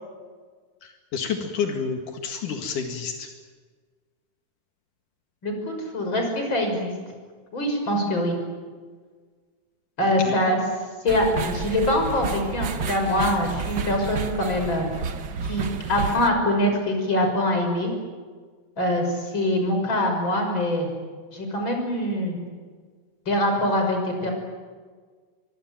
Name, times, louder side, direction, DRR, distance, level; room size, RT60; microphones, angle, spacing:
voice 1, 0.8-3.3 10.3-10.4, left 6 dB, 85° left, 3 dB, 3.5 m, -29 dB
voice 2, 5.4-6.9 7.5-8.4 10.0-10.6 11.0-14.9 15.4-17.9 18.8-20.9 21.3-22.4 23.3-24.3, left 1 dB, 35° left, 3 dB, 6.7 m, -24 dB
sound 1, 11.1-16.3, right 5 dB, 50° right, 1.3 m, -31 dB
24.5 x 24.5 x 9.1 m, 1.5 s
omnidirectional pair, 3.5 m